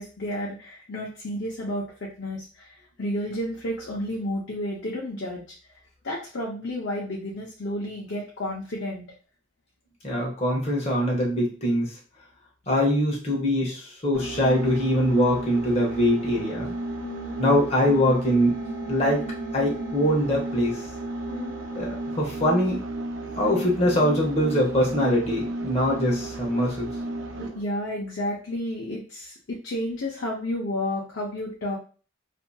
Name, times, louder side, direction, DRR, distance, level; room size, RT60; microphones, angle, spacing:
voice 1, 0.0-5.5 6.0-9.1 17.0-17.3 21.2-21.6 27.3-31.8, left 1 dB, 70° left, -3 dB, 0.6 m, -31 dB
voice 2, 10.0-11.9 12.7-16.7 17.4-18.6 18.9-19.3 19.5-20.8 21.8-22.8 23.3-26.9, equal, 30° left, -2 dB, 0.8 m, -23 dB
sound 1, 14.1-27.7, right 2 dB, 80° right, 0.4 m, -33 dB
2.7 x 2.5 x 2.2 m, 0.37 s
head